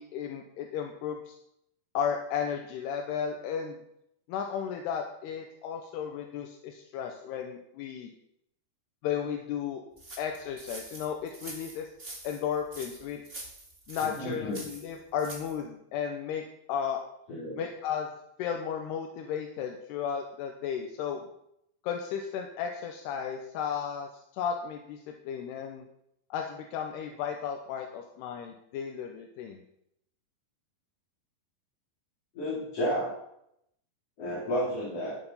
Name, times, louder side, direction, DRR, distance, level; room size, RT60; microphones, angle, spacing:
voice 1, 0.0-1.4 1.9-3.8 4.3-8.1 9.0-9.8 10.2-11.9 12.2-13.2 13.9-17.0 17.5-18.1 18.4-21.2 21.8-25.9 26.3-29.6, left 7 dB, 80° left, 3 dB, 3.0 m, -34 dB
sound 1, 10.0-15.6, right 2 dB, 25° right, 1.3 m, -45 dB
voice 2, 14.0-14.6 17.3-17.7 32.3-33.2 34.2-35.2, equal, 40° left, -6 dB, 4.0 m, -32 dB
12.0 x 9.5 x 5.6 m, 0.76 s
omnidirectional pair, 4.8 m